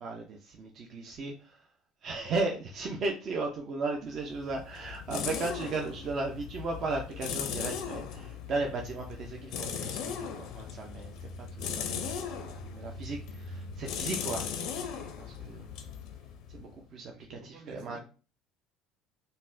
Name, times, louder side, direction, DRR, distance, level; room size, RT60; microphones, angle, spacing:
voice 1, 0.0-1.6 2.0-11.1 11.6-14.5 14.8-15.7 16.5-18.0, right 3 dB, 45° right, 0.5 m, -36 dB
sound 1, 4.2-16.8, left 7 dB, 70° left, 0.5 m, -38 dB
voice 2, 17.1-18.0, right 2 dB, 75° right, 0.9 m, -52 dB
4.1 x 2.1 x 2.6 m
cardioid pair, 115°, 0 cm